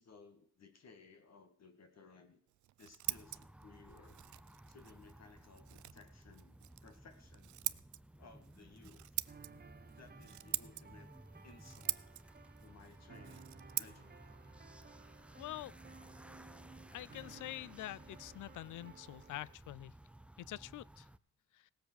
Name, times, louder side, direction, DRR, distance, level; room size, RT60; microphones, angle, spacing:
voice 1, 0.0-2.4 2.8-4.2 4.7-7.6 8.2-9.1 10.0-11.1 11.4-12.0 12.6-14.3, left 4 dB, 55° left, 2.2 m, -60 dB
Scissors, 2.5-16.0, right 14 dB, 70° right, 0.5 m, -45 dB
sound 1, 3.0-21.2, right 1 dB, 5° right, 0.6 m, -57 dB
sound 2, 9.3-19.6, right 5 dB, 30° right, 0.9 m, -58 dB
voice 2, 15.4-15.7 16.9-19.9 20.4-21.1 21.5-21.6, left 15 dB, 75° left, 0.5 m, -46 dB
17.5 x 7.8 x 6.4 m
cardioid pair, 85°, 31 cm